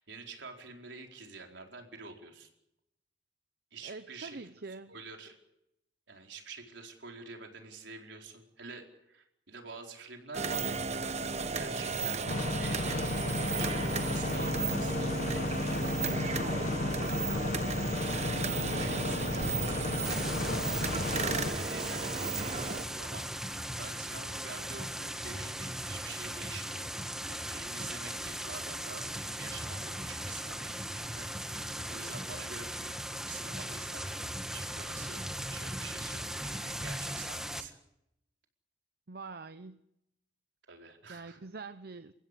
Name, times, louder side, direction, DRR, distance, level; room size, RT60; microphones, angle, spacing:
voice 1, 0.0-2.5 3.7-4.4 4.9-5.4 6.1-10.7 11.5-12.2 12.6-15.7 18.4-26.9 27.3-33.0 33.3-37.8 40.7-41.4, right 4 dB, 80° right, 2 dB, 4.5 m, -47 dB
voice 2, 3.8-4.9 39.1-39.8 41.1-42.1, right 3 dB, 60° right, 11 dB, 0.8 m, -44 dB
sound 1, 10.3-22.8, right 4 dB, 40° right, 1.3 m, -34 dB
sound 2, 12.3-21.5, left 2 dB, 45° left, 0.9 m, -33 dB
sound 3, 20.0-37.6, equal, 5° right, 1.5 m, -38 dB
30.0 x 16.0 x 8.2 m, 0.84 s
head